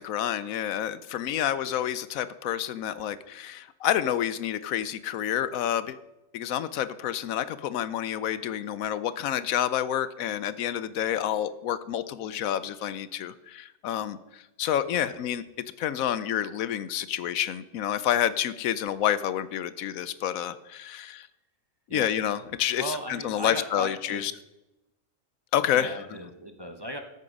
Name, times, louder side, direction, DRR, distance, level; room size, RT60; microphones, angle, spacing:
voice 1, 0.0-6.0 6.3-15.4 15.8-21.3 21.9-24.3 25.5-26.0, left 10 dB, 80° left, 15 dB, 1.0 m, -29 dB
voice 2, 22.8-24.3 25.7-27.0, equal, 20° right, 5 dB, 0.9 m, -37 dB
13.5 x 8.4 x 5.3 m, 0.96 s
omnidirectional pair, 1.4 m